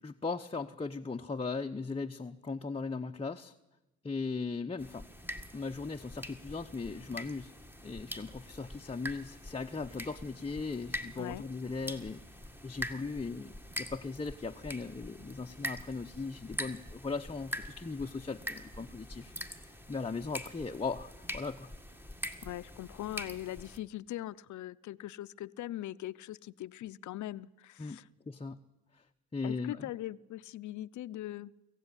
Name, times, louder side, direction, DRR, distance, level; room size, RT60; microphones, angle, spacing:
voice 1, 0.0-3.5 4.0-5.1 5.5-7.5 7.8-12.2 12.6-13.5 13.8-19.3 19.9-21.7 27.8-28.6 28.9-29.0 29.3-29.9, left 4 dB, 20° left, 4 dB, 0.9 m, -38 dB
sound 1, 4.8-23.8, equal, 5° right, 1.8 m, -44 dB
voice 2, 22.4-28.0 29.4-31.5, left 14 dB, 70° left, 15 dB, 0.7 m, -41 dB
24.0 x 15.5 x 9.9 m, 0.98 s
cardioid pair, 90°, 30 cm